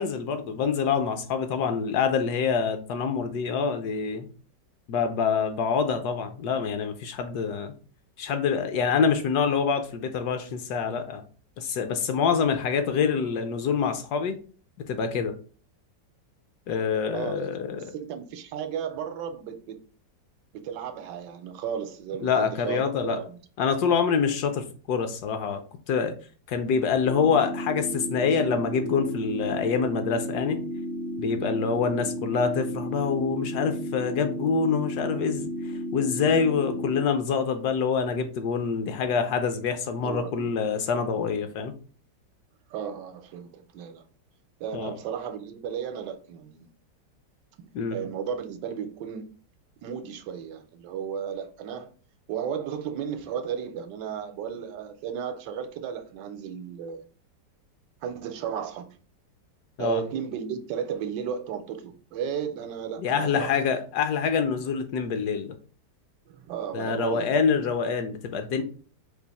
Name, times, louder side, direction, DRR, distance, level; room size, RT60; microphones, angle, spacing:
voice 1, 0.0-4.3 4.9-7.7 8.2-11.2 11.6-14.4 14.9-15.3 16.7-17.8 22.2-23.2 23.6-25.6 25.9-26.1 26.5-30.6 31.2-41.7 44.7-44.9 47.7-48.0 59.8-60.0 63.0-65.5 66.7-68.6, left 6 dB, 70° left, 1.1 m, -26 dB
voice 2, 17.1-19.8 20.5-22.8 23.1-23.4 40.0-40.5 42.7-44.0 44.6-46.7 47.6-49.3 49.8-51.9 52.3-57.0 58.0-58.9 59.8-63.5 66.3-67.3, right 8 dB, 75° right, 1.2 m, -34 dB
sound 1, 27.0-37.0, equal, 45° right, 0.6 m, -33 dB
4.6 x 2.5 x 4.0 m
omnidirectional pair, 1.9 m